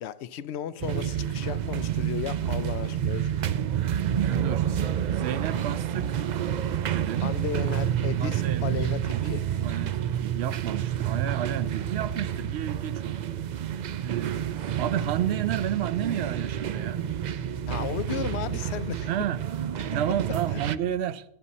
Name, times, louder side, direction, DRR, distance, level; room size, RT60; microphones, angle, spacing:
voice 1, 0.0-3.4 7.2-9.5 17.7-19.1 20.5-20.6, left 10 dB, 90° left, 0.9 m, -35 dB
sound 1, 0.8-20.8, right 10 dB, 55° right, 0.5 m, -29 dB
voice 2, 4.3-4.7 5.1-6.3 6.9-7.3 8.2-8.8 9.0-9.3 9.6-13.2 14.0-14.5 14.8-17.0 19.1-19.4 19.9-21.2, right 10 dB, 80° right, 0.9 m, -31 dB
19.0 x 8.2 x 4.1 m
omnidirectional pair, 1.1 m